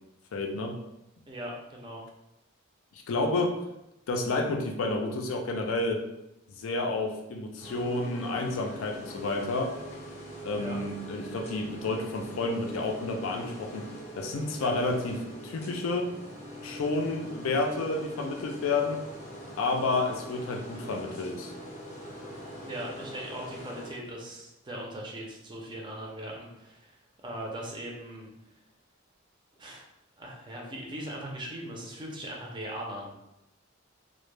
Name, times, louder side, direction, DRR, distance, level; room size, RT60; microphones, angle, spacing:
voice 1, 0.3-0.8 2.9-3.5 4.1-6.0 6.6-9.7 10.4-13.9 14.2-15.2 15.4-16.1 16.6-19.0 19.6-21.5, left 2 dB, 70° left, 3 dB, 0.4 m, -30 dB
voice 2, 1.3-2.0 10.6-10.8 14.6-14.8 22.6-26.9 27.2-28.3 29.6-29.8 30.2-33.2, right 1 dB, 20° right, -1 dB, 0.4 m, -39 dB
sound 1, 7.6-23.9, equal, 35° left, 0.6 m, -43 dB
2.1 x 2.0 x 3.1 m, 0.89 s
head